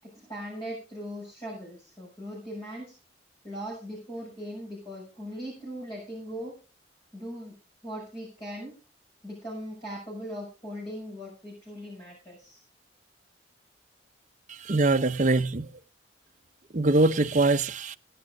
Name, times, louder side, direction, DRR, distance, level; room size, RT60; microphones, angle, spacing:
voice 1, 0.0-2.9 3.4-6.5 7.1-7.5 7.8-8.7 9.2-12.6, equal, 25° left, 6.4 m, -39 dB
voice 2, 14.5-15.7 16.7-18.0, right 2 dB, 40° right, 0.7 m, -23 dB
17.5 x 9.4 x 3.9 m
head